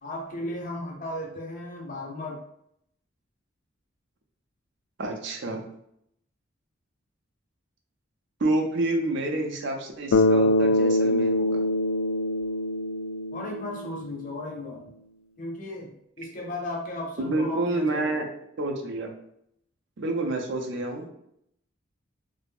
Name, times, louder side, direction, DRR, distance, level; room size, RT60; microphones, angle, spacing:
voice 1, 0.0-2.4 13.3-14.8 15.4-15.9 16.2-18.2, left 1 dB, 40° left, -1 dB, 0.6 m, -35 dB
voice 2, 5.0-5.6 8.4-11.6 17.2-18.3 18.6-19.1 20.0-21.1, right 2 dB, 60° right, 2 dB, 0.5 m, -28 dB
Bass guitar, 10.1-14.3, left 1 dB, 90° left, 0.3 m, -24 dB
2.4 x 2.0 x 3.4 m, 0.74 s
head